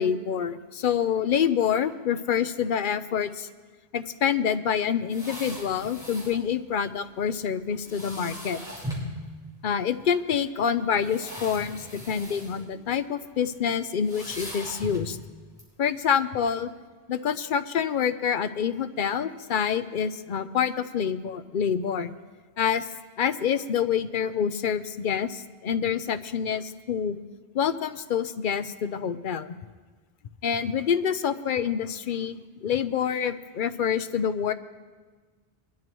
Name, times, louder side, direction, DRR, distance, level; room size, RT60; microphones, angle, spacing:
voice 1, 0.0-3.5 3.9-8.6 9.6-15.2 15.8-16.7 17.1-22.1 22.6-22.8 23.2-27.2 27.5-29.5 30.4-34.5, left 7 dB, 60° left, 10 dB, 0.7 m, -27 dB
sound 1, 5.1-6.4 7.8-9.1 10.1-10.2 10.9-12.6 13.0-13.2 14.0-15.2 15.6-15.7, equal, 5° right, 4.3 m, -39 dB
22.0 x 12.5 x 3.1 m, 1.4 s
omnidirectional pair, 1.0 m